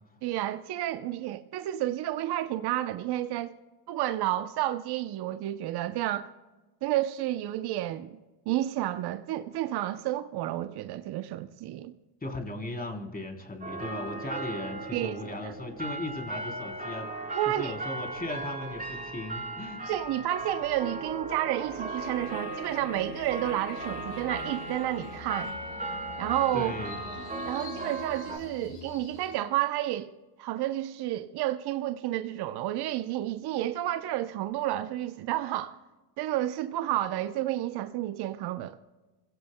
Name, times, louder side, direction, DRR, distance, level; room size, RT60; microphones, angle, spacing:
voice 1, 0.2-3.5 3.9-6.3 6.8-8.2 8.5-11.9 14.9-15.1 17.3-17.8 19.9-25.5 26.2-26.8 27.4-30.1 30.4-35.8 36.2-38.8, right 14 dB, 50° right, 0.8 m, -30 dB
voice 2, 12.2-17.1 17.5-19.8 26.5-27.0, left 2 dB, 20° left, 3.6 m, -37 dB
sound 1, 13.3-13.5 13.9-29.4, left 4 dB, 50° left, 4.7 m, -48 dB
sound 2, 13.6-28.4, right 2 dB, 15° right, 4.3 m, -37 dB
26.5 x 16.5 x 2.2 m
supercardioid pair, 80°, 49 cm